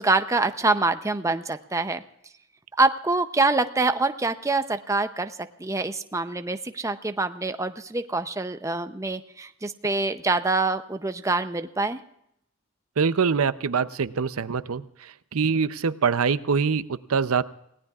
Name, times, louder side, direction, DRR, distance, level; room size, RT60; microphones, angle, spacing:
voice 1, 0.0-2.0 2.8-12.0, right 3 dB, 15° right, 9 dB, 0.6 m, -25 dB
voice 2, 13.0-17.4, right 5 dB, 85° right, 14 dB, 0.6 m, -24 dB
28.5 x 17.5 x 2.4 m, 0.76 s
head